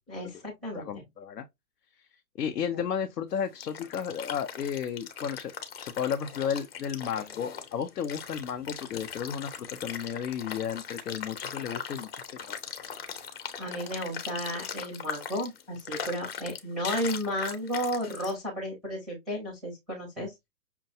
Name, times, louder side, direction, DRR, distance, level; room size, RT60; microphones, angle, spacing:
voice 1, 0.1-1.0 2.7-2.8 13.6-20.3, equal, ahead, 0.5 m, -33 dB
voice 2, 0.7-1.5 2.4-5.5 5.8-12.6 20.2-20.3, left 8 dB, 85° left, 0.7 m, -33 dB
sound 1, 3.3-18.3, left 7 dB, 40° left, 0.8 m, -40 dB
5.7 x 2.2 x 2.6 m
hypercardioid pair, 140°, 46 cm